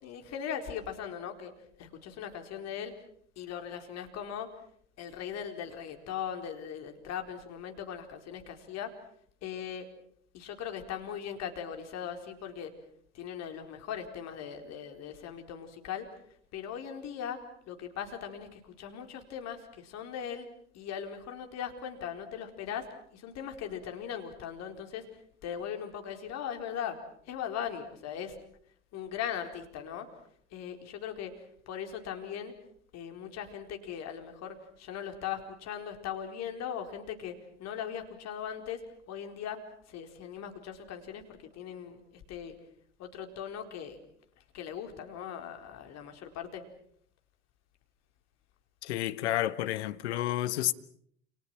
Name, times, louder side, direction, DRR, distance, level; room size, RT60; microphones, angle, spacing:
voice 1, 0.0-1.5 1.8-2.9 3.4-4.5 5.0-8.9 9.4-9.9 10.3-12.7 13.1-16.1 16.5-20.5 20.7-25.1 25.4-27.0 27.2-28.4 28.9-30.1 30.5-32.5 32.9-39.6 39.9-42.5 43.0-44.0 44.5-46.6, left 8 dB, 45° left, 4.5 m, -39 dB
voice 2, 48.8-50.7, left 13 dB, 70° left, 1.4 m, -30 dB
29.0 x 29.0 x 6.0 m
figure-of-eight pair, 75°, 35 cm